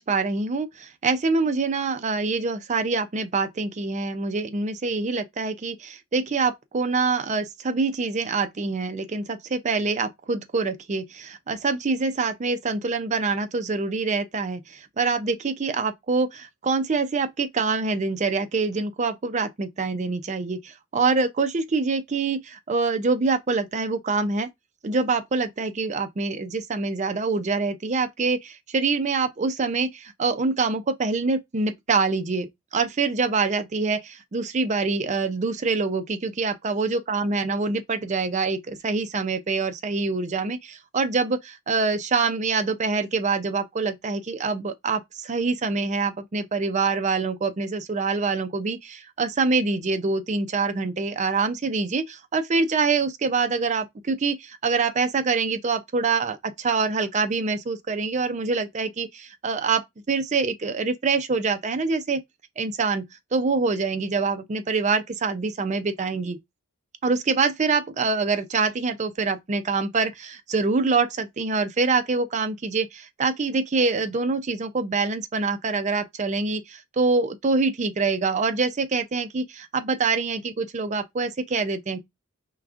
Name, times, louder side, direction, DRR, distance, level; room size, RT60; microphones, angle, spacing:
voice 1, 0.0-24.5 24.8-59.8 60.1-62.2 62.6-66.4 67.0-82.0, right 4 dB, 30° right, 0.4 m, -25 dB
4.6 x 3.4 x 2.4 m
head